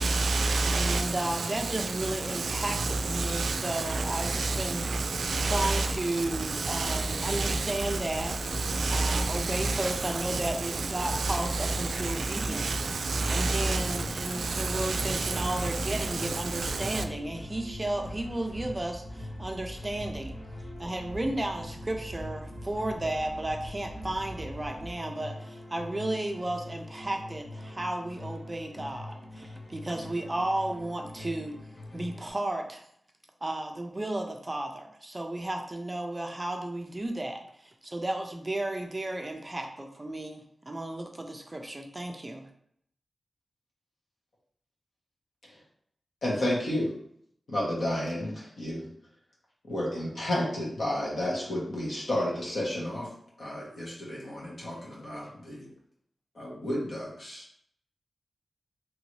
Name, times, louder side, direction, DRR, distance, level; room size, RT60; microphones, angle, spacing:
voice 1, 0.0-8.0 8.2-14.1 14.3-17.0, right 3 dB, 90° right, 0.3 m, -30 dB
voice 2, 0.7-4.9 5.4-8.5 8.9-12.7 13.3-20.4 20.8-31.5 31.9-32.8 33.4-42.5, right 1 dB, 25° right, 0.4 m, -33 dB
sound 1, 5.1-24.9, equal, ahead, 0.9 m, -43 dB
sound 2, 13.1-32.3, left 1 dB, 40° left, 0.7 m, -44 dB
voice 3, 46.2-46.9 47.5-48.9 49.6-53.1 53.4-55.7 56.3-57.4, left 1 dB, 60° left, 1.2 m, -31 dB
2.9 x 2.6 x 3.1 m
wide cardioid pair, 95°, 0 cm